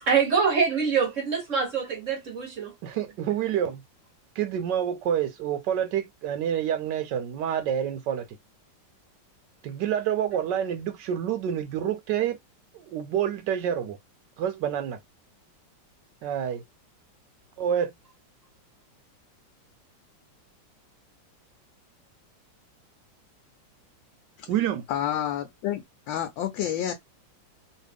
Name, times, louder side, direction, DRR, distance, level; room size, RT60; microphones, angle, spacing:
voice 1, 0.0-2.7, right 6 dB, 55° right, 0.9 m, -25 dB
voice 2, 2.8-3.8 4.4-8.4 9.6-12.4 12.7-14.0 14.4-15.0 16.2-16.6 17.6-17.9 24.5-24.8, right 9 dB, 75° right, 1.1 m, -28 dB
voice 3, 24.9-26.9, left 11 dB, 80° left, 1.3 m, -29 dB
3.1 x 2.6 x 3.3 m
omnidirectional pair, 2.1 m